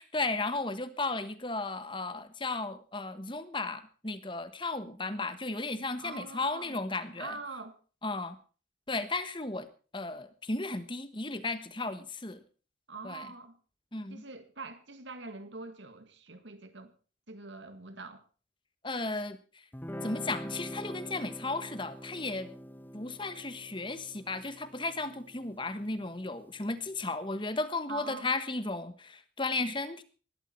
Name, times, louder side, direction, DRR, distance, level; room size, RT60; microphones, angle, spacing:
voice 1, 0.0-7.3 8.0-8.4 8.9-9.7 9.9-12.4 13.0-13.3 13.9-14.2 18.8-19.4 20.0-22.5 22.9-30.0, left 3 dB, 25° left, 1.4 m, -35 dB
voice 2, 6.0-6.8 7.2-7.8 12.9-13.6 14.1-16.9 17.3-18.2 27.9-28.3, right 3 dB, 75° right, 2.0 m, -44 dB
Guitar, 19.7-26.9, equal, 10° left, 0.7 m, -45 dB
19.0 x 13.0 x 4.5 m
head